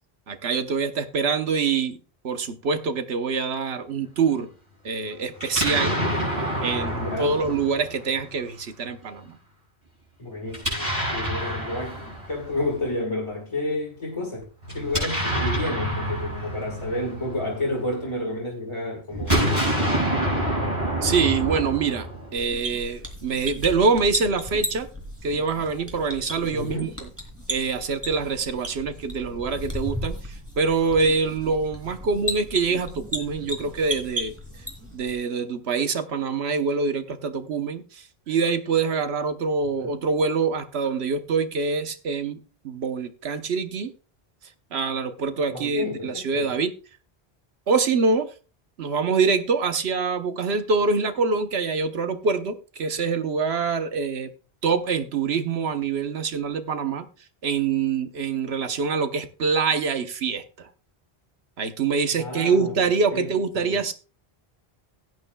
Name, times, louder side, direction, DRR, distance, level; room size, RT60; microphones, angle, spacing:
voice 1, 0.3-2.0 2.2-4.5 4.8-6.0 6.6-6.9 7.2-9.4 21.0-22.1 22.3-24.9 25.2-27.1 27.5-34.3 34.9-43.9 44.7-46.7 47.7-48.3 48.8-54.3 54.6-57.1 57.4-60.7 61.6-63.9, right 5 dB, 85° right, 1.2 m, -25 dB
Explosion, 5.4-8.4 10.5-12.7 14.6-18.1 19.1-22.5, right 1 dB, 35° right, 7.0 m, -27 dB
voice 2, 6.9-7.4 10.2-19.4 26.5-26.9 39.8-40.0 45.5-46.5 62.2-62.8 63.1-63.3 63.5-63.8, left 2 dB, 30° left, 1.8 m, -31 dB
sound 1, 22.4-35.1, equal, 15° right, 2.5 m, -35 dB
16.5 x 9.3 x 2.3 m
omnidirectional pair, 1.1 m